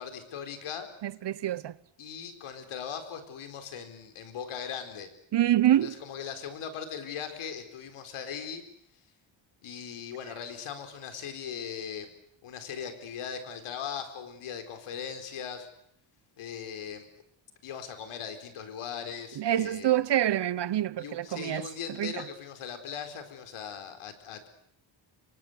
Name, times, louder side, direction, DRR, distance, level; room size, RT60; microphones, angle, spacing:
voice 1, 0.0-0.9 2.0-5.1 5.8-8.6 9.6-12.1 12.4-15.7 16.4-17.1 17.6-20.0 21.0-24.5, left 7 dB, 85° left, 4.5 m, -39 dB
voice 2, 1.0-1.7 5.3-6.0 19.4-21.7 22.0-22.1, right 12 dB, 55° right, 1.0 m, -26 dB
27.0 x 24.0 x 8.1 m
cardioid pair, 110°, 49 cm